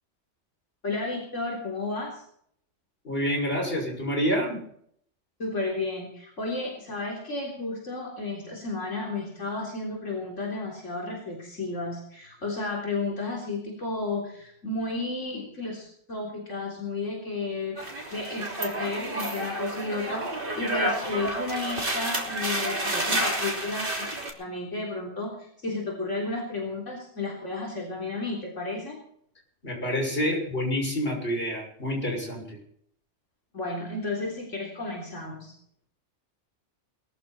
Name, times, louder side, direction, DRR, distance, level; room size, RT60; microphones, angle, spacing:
voice 1, 0.8-2.2 5.4-17.8 18.1-24.1 24.4-29.0 33.5-35.5, left 3 dB, 85° left, -1 dB, 4.0 m, -32 dB
voice 2, 3.0-4.6 29.6-32.6, equal, 50° left, 0 dB, 6.6 m, -28 dB
sound 1, 17.8-24.3, right 1 dB, 45° right, 3.5 m, -30 dB
22.0 x 14.0 x 4.3 m, 0.66 s
omnidirectional pair, 1.2 m